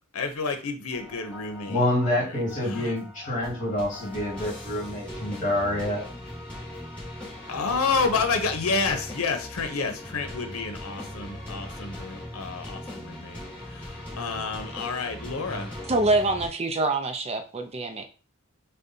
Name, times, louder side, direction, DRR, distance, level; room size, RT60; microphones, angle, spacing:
voice 1, 0.1-1.8 2.7-3.0 7.5-13.4 13.7-15.7, left 4 dB, 80° left, 6 dB, 0.7 m, -29 dB
sound 1, 0.9-16.5, left 1 dB, 5° left, 1.5 m, -40 dB
voice 2, 1.7-6.1, left 1 dB, 35° left, -5 dB, 1.9 m, -27 dB
voice 3, 15.9-18.1, right 2 dB, 30° right, 6 dB, 0.5 m, -25 dB
6.5 x 2.2 x 2.7 m, 0.36 s
head